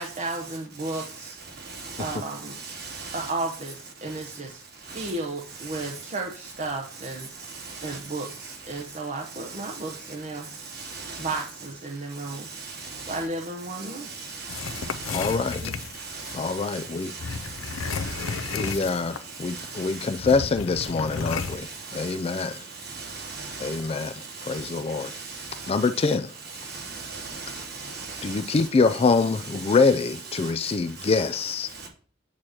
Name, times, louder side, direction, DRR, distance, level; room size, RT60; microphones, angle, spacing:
voice 1, 0.0-1.4 2.0-2.5 3.1-4.6 4.9-7.3 7.8-10.5 11.2-12.5 13.1-14.1 15.6-15.7, right 2 dB, 35° right, 0.8 m, -33 dB
voice 2, 1.6-2.2 2.4-3.3 4.9-5.1 5.6-6.0 7.5-8.5 8.7-8.8 9.4-10.0 10.6-11.4 12.3-13.3 13.7-19.0 19.2-20.2 20.8-20.9 21.3-26.1 26.4-31.3 31.7-31.9, right 4 dB, 55° right, 3.0 m, -39 dB
sound 1, 14.5-16.4 17.2-19.3 19.6-19.7 20.2-21.6, left 5 dB, 85° left, 0.5 m, -33 dB
voice 3, 15.1-15.6 16.3-17.1 18.5-21.7 21.9-22.5 23.6-24.1 24.4-25.1 25.7-26.3 28.2-31.9, left 4 dB, 30° left, 0.3 m, -25 dB
8.7 x 3.0 x 6.3 m
head